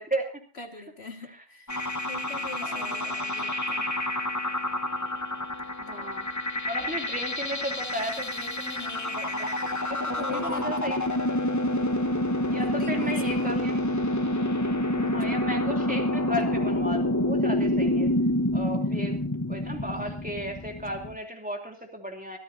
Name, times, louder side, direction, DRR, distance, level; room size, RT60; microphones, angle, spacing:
voice 1, 0.0-0.4 2.6-3.3 5.8-11.0 12.5-13.8 15.1-18.1 18.5-19.2 19.5-22.4, equal, 5° right, 3 dB, 2.9 m, -35 dB
voice 2, 0.6-1.7 2.1-3.9 5.9-6.1 8.7-9.0 10.1-10.8 12.6-13.6 15.0-15.4 20.0-20.1, left 4 dB, 60° left, 5 dB, 2.4 m, -42 dB
sound 1, 1.7-21.2, left 1 dB, 15° left, 1.0 m, -28 dB
24.0 x 13.5 x 2.8 m, 0.37 s
omnidirectional pair, 1.2 m